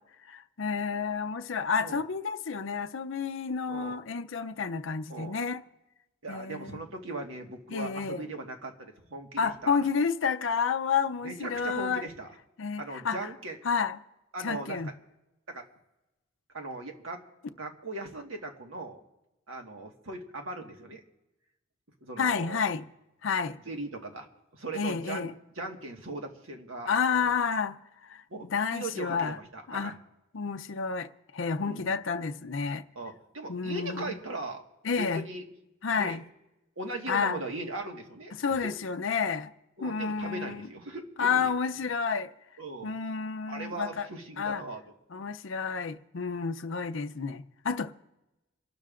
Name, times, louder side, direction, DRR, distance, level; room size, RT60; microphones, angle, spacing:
voice 1, 0.3-5.6 6.3-6.9 7.7-8.2 9.4-12.1 12.6-13.2 13.6-14.0 14.4-14.9 22.2-22.9 23.2-23.6 24.7-25.3 26.9-29.4 29.7-29.9 30.3-31.1 31.3-32.8 33.5-34.2 34.8-35.2 35.8-36.2 37.1-37.4 38.3-39.5 39.8-40.7 41.2-42.3 42.8-44.1 44.4-44.6 45.1-47.9, left 5 dB, 70° left, 0.5 m, -30 dB
voice 2, 3.7-4.0 5.1-5.4 6.2-9.8 11.2-12.3 12.8-13.6 14.3-14.9 15.5-15.6 16.5-17.2 17.6-19.0 19.5-21.0 22.0-22.6 23.6-24.3 24.5-25.3 25.5-27.3 28.3-28.5 28.7-29.9 31.6-31.9 32.9-34.6 35.0-35.4 36.0-36.2 36.8-38.7 39.8-41.5 42.6-42.9 43.5-44.8, right 2 dB, 85° right, 1.6 m, -39 dB
28.0 x 12.0 x 2.5 m
head